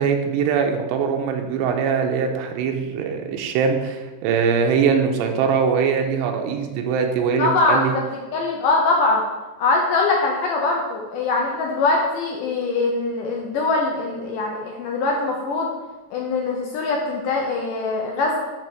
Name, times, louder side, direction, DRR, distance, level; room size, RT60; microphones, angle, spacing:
voice 1, 0.0-8.0, right 6 dB, 85° right, 4 dB, 2.9 m, -22 dB
voice 2, 7.4-8.0 8.3-9.2 9.6-15.7 16.1-18.4, left 3 dB, 80° left, 0 dB, 1.9 m, -22 dB
10.0 x 3.5 x 6.5 m, 1.2 s
omnidirectional pair, 4.9 m